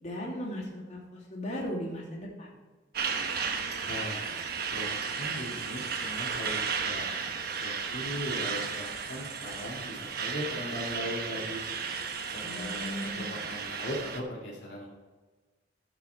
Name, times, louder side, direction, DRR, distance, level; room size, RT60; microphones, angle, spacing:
voice 1, 0.0-2.6 12.4-13.5, equal, 40° left, -4 dB, 2.8 m, -37 dB
Truck, 2.9-14.2, right 5 dB, 55° right, 1.1 m, -34 dB
voice 2, 3.9-4.3 4.7-7.1 7.6-11.6 12.3-12.9 13.2-14.9, equal, 70° left, -4 dB, 2.3 m, -38 dB
13.5 x 6.1 x 4.6 m, 1.3 s
head